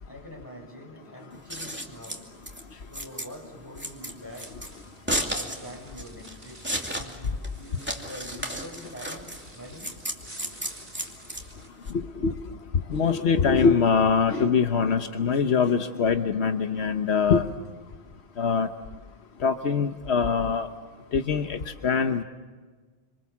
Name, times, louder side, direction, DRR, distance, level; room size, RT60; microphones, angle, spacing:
voice 1, 0.1-2.3 2.9-4.7 5.3-6.6 6.9-9.2 9.5-9.9, equal, 20° left, 0 dB, 7.0 m, -44 dB
Scissors, 1.3-11.9, equal, 10° right, 2.6 m, -34 dB
sound 1, 4.2-11.7, right 1 dB, 35° right, 4.0 m, -50 dB
voice 2, 11.9-12.3 12.9-17.5 18.4-18.7 19.4-20.7 21.1-22.2, left 5 dB, 80° left, 7 dB, 1.3 m, -23 dB
27.0 x 26.5 x 7.3 m, 1.4 s
omnidirectional pair, 1.1 m